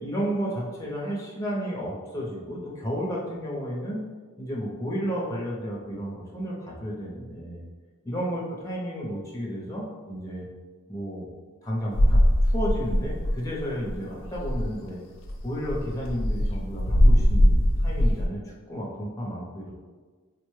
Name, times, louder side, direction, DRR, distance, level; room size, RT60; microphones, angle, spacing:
voice 1, 0.0-4.0 4.4-7.6 8.0-10.5 10.9-11.3 11.6-15.0 15.4-19.7, equal, 15° left, -4 dB, 0.6 m, -32 dB
sound 1, 11.9-13.6 13.9-14.0 14.2-14.7 15.2-18.3, equal, 65° left, 0.4 m, -21 dB
4.0 x 2.1 x 3.1 m, 1.4 s
head